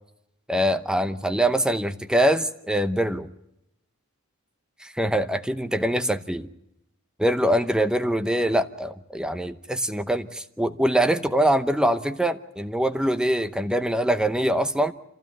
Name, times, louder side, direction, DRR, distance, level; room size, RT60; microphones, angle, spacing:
voice 1, 0.5-3.3 4.8-6.5 7.2-14.9, right 1 dB, 5° right, 9 dB, 0.8 m, -23 dB
26.5 x 15.5 x 9.2 m, 0.85 s
head